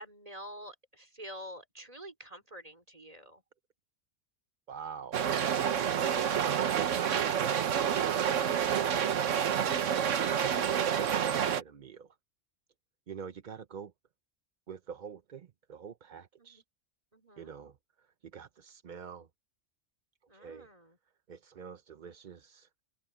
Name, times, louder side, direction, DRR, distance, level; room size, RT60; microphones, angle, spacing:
voice 1, 0.0-3.4 16.4-16.6 17.1-17.5 20.3-21.0, equal, 30° right, 4.0 m, -47 dB
voice 2, 4.7-5.2 6.6-8.0 9.6-9.8 10.5-12.1 13.1-13.9 14.7-16.6 17.4-17.7 18.3-19.3 20.3-20.7 21.3-22.7, right 7 dB, 45° right, 0.7 m, -46 dB
sound 1, 5.1-11.6, right 8 dB, 85° right, 1.3 m, -28 dB
open air
omnidirectional pair, 1.3 m